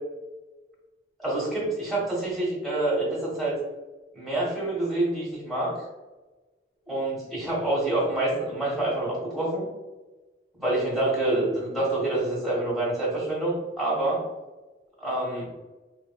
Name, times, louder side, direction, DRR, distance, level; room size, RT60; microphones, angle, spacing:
voice 1, 1.2-3.6 4.1-5.7 6.9-9.7 10.6-14.2 15.0-15.5, right 2 dB, ahead, -7 dB, 1.3 m, -27 dB
4.1 x 2.5 x 2.3 m, 1.2 s
head